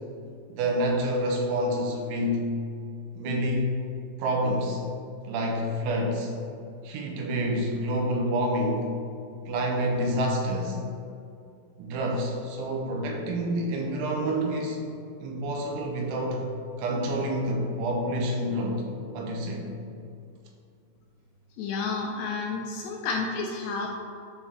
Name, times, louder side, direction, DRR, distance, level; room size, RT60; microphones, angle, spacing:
voice 1, 0.5-2.5 3.1-3.7 4.2-4.8 5.2-6.3 6.8-8.9 9.5-10.8 11.8-14.8 15.2-16.5 16.8-18.9 19.1-19.7, equal, 85° right, 0 dB, 3.3 m, -28 dB
voice 2, 21.6-23.9, left 4 dB, 80° left, 0 dB, 2.5 m, -30 dB
9.8 x 3.6 x 4.3 m, 2.5 s
omnidirectional pair, 5.3 m